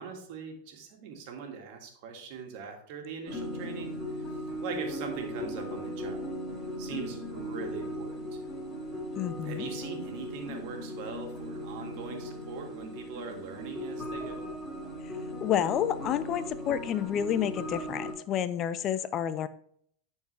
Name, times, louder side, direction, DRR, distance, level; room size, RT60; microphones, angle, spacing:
voice 1, 0.0-3.9 4.6-6.3 6.8-8.6 9.4-14.5, right 5 dB, 60° right, 3 dB, 1.9 m, -41 dB
sound 1, 3.3-18.1, equal, 15° left, 3.4 m, -38 dB
voice 2, 9.2-9.7 15.0-15.1 15.4-19.5, left 10 dB, 40° left, 14 dB, 0.5 m, -30 dB
11.5 x 4.5 x 3.3 m, 0.65 s
hypercardioid pair, 100°, 0 cm